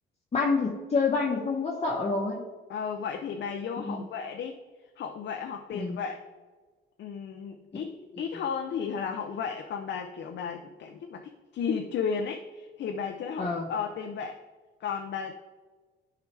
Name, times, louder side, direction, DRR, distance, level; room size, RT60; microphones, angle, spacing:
voice 1, 0.3-2.5 3.8-4.0 5.7-6.0 8.1-8.2 13.4-13.7, left 4 dB, 35° left, -3 dB, 1.1 m, -28 dB
voice 2, 2.7-4.6 5.0-6.2 7.0-14.4 14.8-15.3, left 6 dB, 65° left, 4 dB, 0.6 m, -34 dB
10.5 x 4.9 x 3.3 m, 1.4 s
cardioid pair, 90°, 20 cm